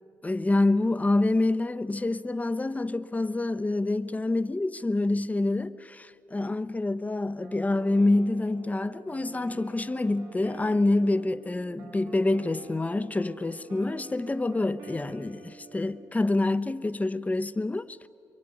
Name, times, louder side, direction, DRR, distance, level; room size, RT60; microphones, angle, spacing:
voice 1, 0.2-18.1, left 2 dB, 20° left, 1.0 m, -27 dB
sound 1, 7.4-16.1, right 5 dB, 90° right, 2.2 m, -49 dB
26.0 x 22.5 x 9.5 m
cardioid pair, 65°, 8 cm